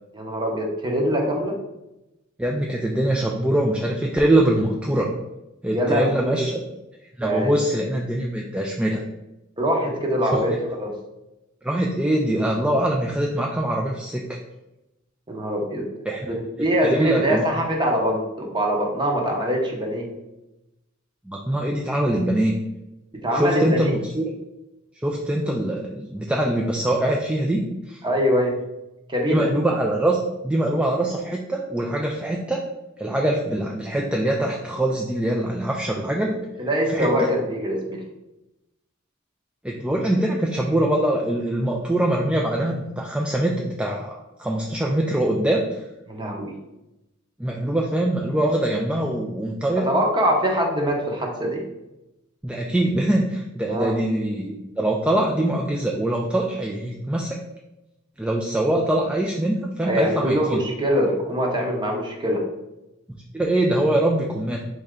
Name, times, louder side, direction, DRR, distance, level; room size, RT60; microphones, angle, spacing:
voice 1, 0.1-1.5 5.7-6.3 7.2-7.5 9.6-10.9 15.3-15.9 16.3-20.1 23.1-23.9 28.0-28.6 29.1-29.5 36.6-38.0 46.1-46.5 49.8-51.6 53.7-53.9 59.8-62.4, equal, 25° right, 1 dB, 0.8 m, -23 dB
voice 2, 2.4-5.1 5.6-6.6 7.2-9.0 11.6-14.4 16.1-17.5 21.3-22.6 23.3-24.3 25.0-28.0 29.3-30.2 30.4-32.6 33.0-36.4 36.9-37.3 39.6-45.7 47.4-49.9 52.4-57.4 58.2-60.6 63.3-64.6, right 1 dB, 5° right, -1 dB, 0.3 m, -23 dB
4.1 x 3.3 x 3.6 m, 0.96 s
head